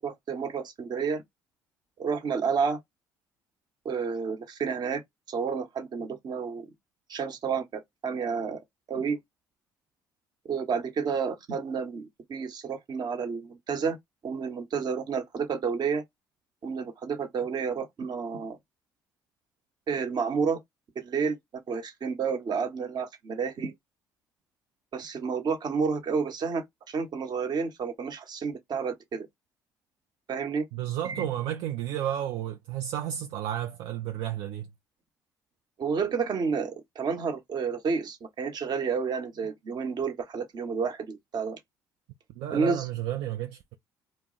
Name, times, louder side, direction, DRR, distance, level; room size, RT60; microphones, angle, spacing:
voice 1, 0.0-1.2 2.0-2.8 3.8-5.0 5.3-6.7 7.1-8.6 8.9-9.2 10.5-14.0 14.2-16.0 16.6-18.6 19.9-20.6 21.0-21.4 21.7-23.7 24.9-29.3 30.3-30.6 31.0-31.2 35.8-41.6 42.5-42.9, right 5 dB, 50° right, 0.9 m, -30 dB
voice 2, 30.7-34.7 42.4-43.7, right 11 dB, 70° right, 0.4 m, -32 dB
2.2 x 2.0 x 3.8 m
hypercardioid pair, 55°, 9 cm